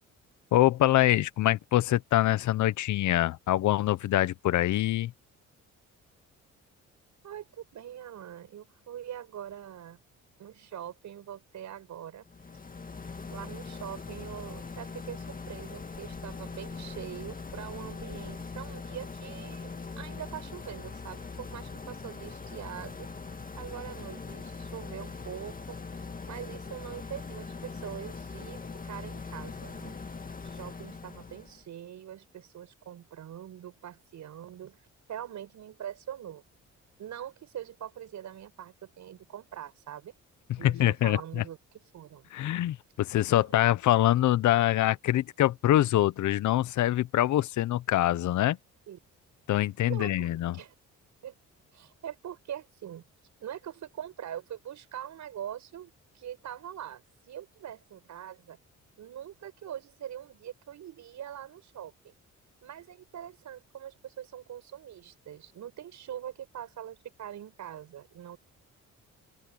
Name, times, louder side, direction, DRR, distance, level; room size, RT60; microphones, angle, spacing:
voice 1, 0.5-5.1 40.6-41.4 42.3-48.6 49.5-50.5, left 14 dB, 75° left, 1.0 m, -24 dB
voice 2, 7.2-10.0 10.4-12.3 13.3-19.7 20.0-23.1 23.6-25.8 26.3-30.0 30.5-34.8 35.1-36.4 37.0-40.1 40.6-41.6 41.9-42.3 43.3-43.6 48.9-49.0 49.9-50.7 51.2-51.3 51.7-53.1 53.4-58.6 59.0-62.1 62.6-68.4, right 10 dB, 70° right, 7.2 m, -43 dB
sound 1, 12.2-31.6, left 4 dB, 30° left, 2.2 m, -41 dB
open air
cardioid pair, 90°, 30 cm